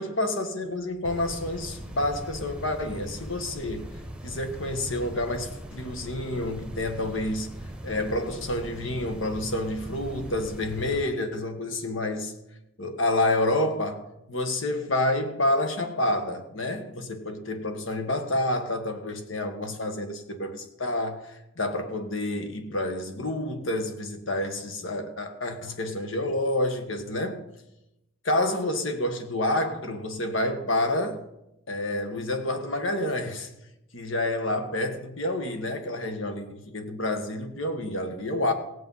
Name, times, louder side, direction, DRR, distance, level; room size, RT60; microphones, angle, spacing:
voice 1, 0.0-4.0 4.2-12.3 12.8-27.4 28.2-31.2 31.7-33.5 33.9-38.5, left 1 dB, 70° left, 1.6 m, -29 dB
sound 1, 1.0-11.0, right 1 dB, 5° right, 1.0 m, -40 dB
16.5 x 7.9 x 5.6 m
head